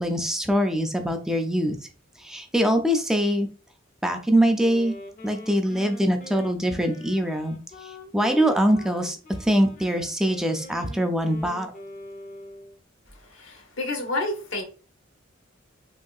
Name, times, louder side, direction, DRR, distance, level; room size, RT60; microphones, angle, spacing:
voice 1, 0.0-1.8 2.2-3.5 4.0-4.9 5.2-7.6 8.1-11.7, equal, 5° right, 5 dB, 0.3 m, -23 dB
Wind instrument woodwind instrument, 4.6-12.8, equal, 40° left, 0.6 m, -43 dB
voice 2, 13.3-14.6, left 2 dB, 65° left, 2 dB, 0.9 m, -29 dB
2.9 x 2.7 x 2.3 m, 0.38 s
head